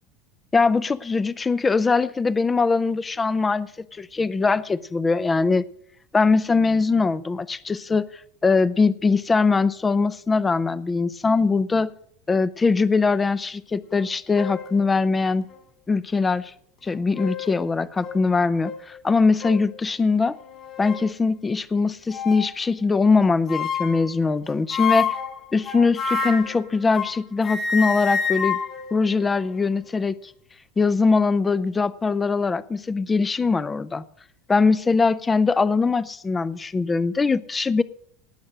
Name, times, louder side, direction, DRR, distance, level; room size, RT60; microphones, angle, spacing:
voice 1, 0.5-5.6 6.1-8.1 8.4-11.9 12.3-15.4 15.9-16.5 16.8-20.4 20.8-25.2 25.5-28.6 28.9-30.2 30.8-34.0 34.5-37.8, left 4 dB, 15° left, 18 dB, 0.5 m, -21 dB
sound 1, 13.9-14.0 14.3-14.7 15.5-15.6 16.8-17.6 18.0-18.2 18.6-18.8 19.4-19.7 20.3-21.1 22.1-22.5 23.5-24.1 24.7-27.2 27.4-29.8, left 6 dB, 40° left, 3.2 m, -29 dB
18.5 x 6.5 x 6.2 m, 0.63 s
supercardioid pair, 115°, 0 cm